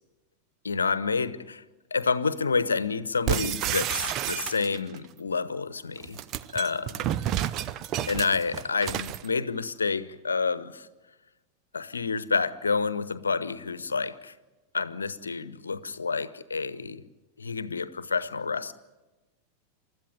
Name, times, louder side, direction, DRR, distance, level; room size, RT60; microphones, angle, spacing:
voice 1, 0.6-1.6 1.9-6.2 6.5-7.1 8.1-10.9 11.7-14.3 14.7-17.1 17.4-18.7, left 4 dB, 75° left, 16 dB, 1.0 m, -29 dB
sound 1, 3.3-5.0 6.0-9.3, right 11 dB, 35° right, 0.8 m, -30 dB
29.0 x 13.5 x 9.4 m, 1.1 s
figure-of-eight pair, 90°, 0 cm